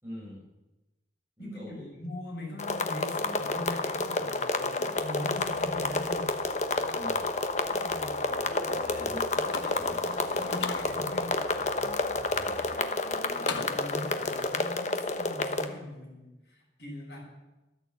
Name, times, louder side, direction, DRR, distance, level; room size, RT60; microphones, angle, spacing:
voice 1, 0.0-0.5 1.4-1.9 6.9-7.3 8.5-10.6 12.3-13.8, left 1 dB, 10° right, -8 dB, 6.8 m, -44 dB
voice 2, 1.4-6.3 7.7-8.4 10.8-11.4 12.5-17.2, left 1 dB, 60° left, -2 dB, 7.2 m, -41 dB
sound 1, 2.6-15.7, left 3 dB, 40° left, 1.1 m, -30 dB
sound 2, 5.3-13.0, equal, 35° right, 2.9 m, -48 dB
sound 3, 9.5-10.8 13.5-14.4, left 4 dB, 90° left, 1.3 m, -38 dB
13.5 x 13.5 x 7.9 m, 1.0 s
head